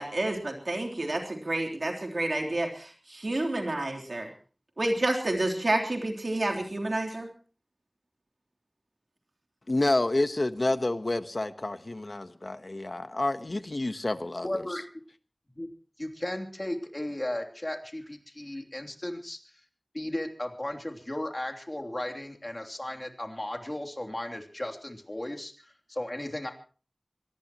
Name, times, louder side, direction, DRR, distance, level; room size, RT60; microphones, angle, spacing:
voice 1, 0.0-2.7 3.2-4.3 4.8-7.3, right 2 dB, 90° right, 3.5 m, -29 dB
voice 2, 9.7-14.6, left 2 dB, 65° left, 1.1 m, -29 dB
voice 3, 14.4-14.8 15.5-15.7 16.0-19.4 19.9-26.5, left 1 dB, 35° left, 3.1 m, -35 dB
25.0 x 18.5 x 3.0 m
wide cardioid pair, 45°, 0 cm